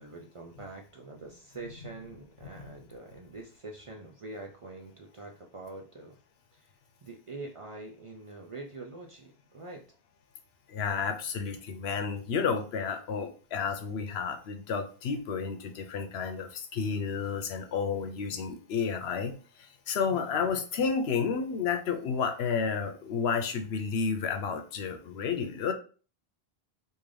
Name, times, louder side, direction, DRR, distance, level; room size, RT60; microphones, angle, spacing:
voice 1, 0.0-6.2 6.5-6.7 7.0-9.9 20.1-20.5, right 2 dB, 45° right, 1 dB, 0.4 m, -45 dB
voice 2, 10.7-19.3 19.6-25.7, left 6 dB, 85° left, 7 dB, 0.9 m, -31 dB
3.7 x 2.6 x 3.2 m, 0.38 s
omnidirectional pair, 1.0 m